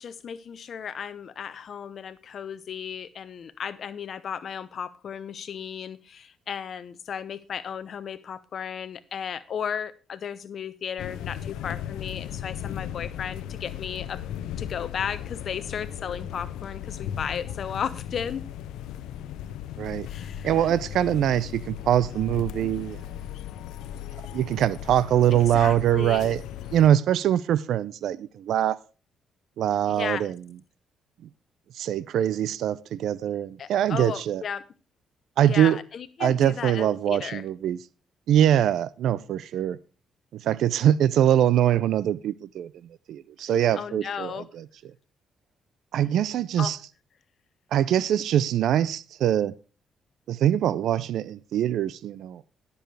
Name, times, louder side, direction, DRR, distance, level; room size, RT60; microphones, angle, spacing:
voice 1, 0.0-14.3 14.6-18.5 20.1-20.7 25.3-26.3 29.9-30.3 33.6-34.7 35.5-37.4 43.7-44.5 46.6-46.8, left 7 dB, 55° left, 0.8 m, -35 dB
sound 1, 11.0-26.9, left 11 dB, 90° left, 0.7 m, -37 dB
voice 2, 20.4-23.0 24.3-26.4 26.7-28.8 29.6-30.3 31.8-34.4 35.4-35.8 36.2-37.8 38.3-39.8 40.4-42.7 43.1-44.3 45.9-46.8 47.7-49.5 50.3-52.4, right 11 dB, 75° right, 0.5 m, -23 dB
19.5 x 7.0 x 3.3 m
cardioid pair, 90°, 0 cm